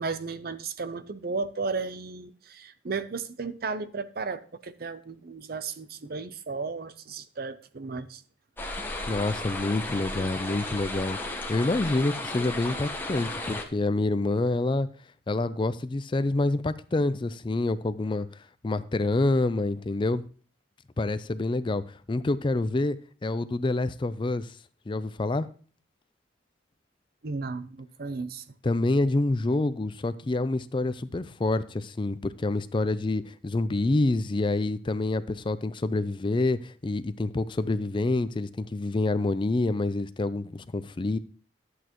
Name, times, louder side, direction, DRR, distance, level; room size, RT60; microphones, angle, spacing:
voice 1, 0.0-8.2 27.2-28.4, right 4 dB, 55° right, 0.6 m, -34 dB
sound 1, 8.6-13.6, left 2 dB, 10° left, 1.1 m, -34 dB
voice 2, 9.1-14.9 15.3-18.3 18.6-20.2 21.0-24.5 24.9-25.5 28.6-41.2, left 2 dB, 25° left, 0.4 m, -27 dB
11.5 x 8.2 x 3.0 m
head